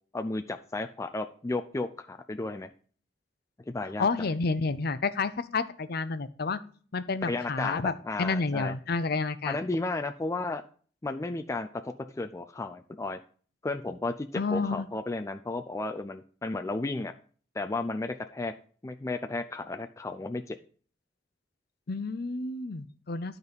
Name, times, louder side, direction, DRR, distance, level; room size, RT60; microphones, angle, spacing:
voice 1, 0.1-2.7 3.7-4.3 7.2-8.7 9.5-10.6 11.0-13.2 13.6-17.1 17.5-18.5 18.8-20.6, left 2 dB, 15° left, 7 dB, 0.4 m, -33 dB
voice 2, 4.0-6.6 6.9-7.9 8.2-9.6 14.4-14.9 21.9-23.4, left 4 dB, 55° left, 12 dB, 0.6 m, -30 dB
12.0 x 4.0 x 5.2 m, 0.43 s
head